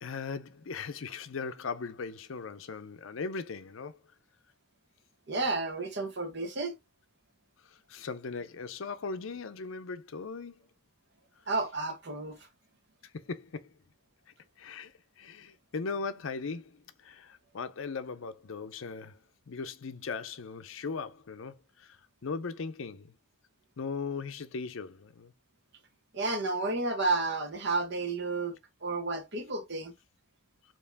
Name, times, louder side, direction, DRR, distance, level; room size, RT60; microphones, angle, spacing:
voice 1, 0.0-4.0 7.6-10.6 13.1-13.7 14.6-19.2 19.5-23.1 23.8-25.3, left 4 dB, 65° left, 0.5 m, -39 dB
voice 2, 5.3-6.8 11.5-12.4 26.1-28.6 28.8-29.9, right 3 dB, 55° right, 1.1 m, -31 dB
4.6 x 2.9 x 3.5 m
head